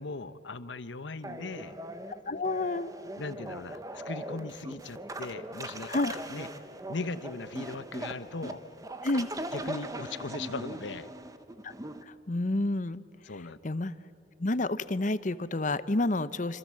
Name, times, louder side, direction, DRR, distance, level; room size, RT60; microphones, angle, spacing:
voice 1, 0.0-1.8 2.3-2.5 3.2-6.5 6.9-8.6 9.5-11.1 13.2-13.6, left 3 dB, 75° left, 14 dB, 1.0 m, -39 dB
sound 1, 1.2-12.0, right 1 dB, 20° right, 1.0 m, -40 dB
voice 2, 2.3-2.9 5.9-6.2 9.0-9.3 11.6-11.7 12.1-13.0 13.6-13.9 14.4-16.6, left 2 dB, 40° left, 15 dB, 0.8 m, -29 dB
27.0 x 26.5 x 7.6 m, 2.8 s
head